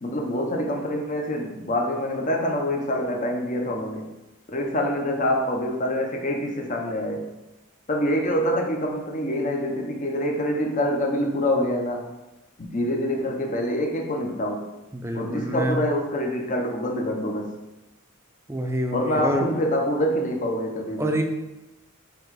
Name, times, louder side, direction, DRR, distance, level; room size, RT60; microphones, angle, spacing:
voice 1, 0.0-4.1 4.5-7.3 7.9-12.1 12.6-14.7 15.1-17.6 18.9-21.1, left 1 dB, 35° left, 1 dB, 0.9 m, -26 dB
voice 2, 14.9-15.8 18.5-19.4 21.0-21.2, right 1 dB, 10° right, 4 dB, 0.6 m, -26 dB
6.9 x 3.5 x 4.8 m, 0.99 s
head